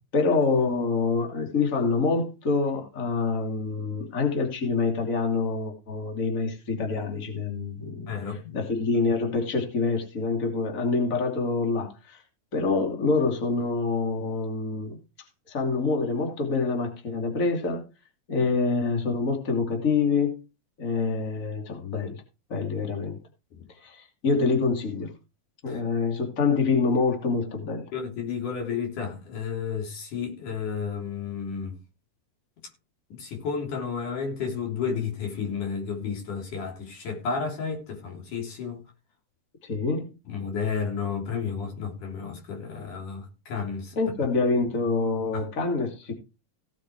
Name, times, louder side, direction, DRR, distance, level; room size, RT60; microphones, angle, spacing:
voice 1, 0.1-12.2 12.5-15.0 15.5-17.8 18.3-20.4 20.8-22.2 22.5-23.2 23.8-25.1 25.6-27.9 39.6-40.1 44.0-46.1, left 4 dB, 25° left, 2.9 m, -26 dB
voice 2, 8.1-8.6 23.5-23.6 25.7-25.8 27.9-31.8 33.1-38.8 40.3-44.0 45.3-45.4, left 6 dB, 80° left, 5.0 m, -32 dB
17.0 x 6.4 x 4.8 m
omnidirectional pair, 3.5 m